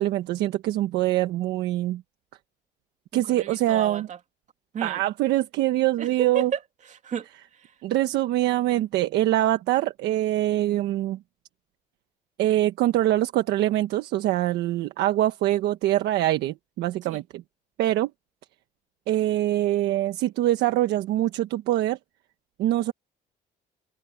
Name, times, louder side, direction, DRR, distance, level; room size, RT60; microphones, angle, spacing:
voice 1, 0.0-2.0 3.1-4.1 4.8-6.5 7.8-11.2 12.4-17.4 17.8-18.1 19.1-22.0 22.6-22.9, right 14 dB, 80° right, 1.3 m, -24 dB
voice 2, 3.1-4.2 4.7-5.0 6.0-7.8 17.0-17.2, right 7 dB, 45° right, 2.9 m, -33 dB
cardioid pair, 110°, 17 cm